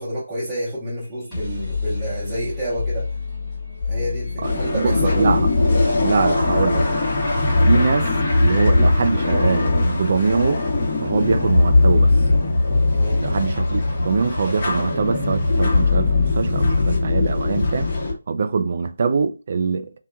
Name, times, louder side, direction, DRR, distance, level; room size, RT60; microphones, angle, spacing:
voice 1, 0.0-3.1 3.8-5.4 12.9-13.2, right 1 dB, 5° right, 0.8 m, -29 dB
sound 1, 1.0-14.9, left 4 dB, 15° left, 1.4 m, -31 dB
sound 2, 4.4-18.1, left 2 dB, 30° left, 1.0 m, -20 dB
voice 2, 4.4-5.6 6.0-7.0 7.6-8.1 8.4-10.6 11.0-12.1 13.2-17.9 18.3-19.9, right 5 dB, 45° right, 0.3 m, -23 dB
2.9 x 2.2 x 2.3 m
figure-of-eight pair, 155°, 0 cm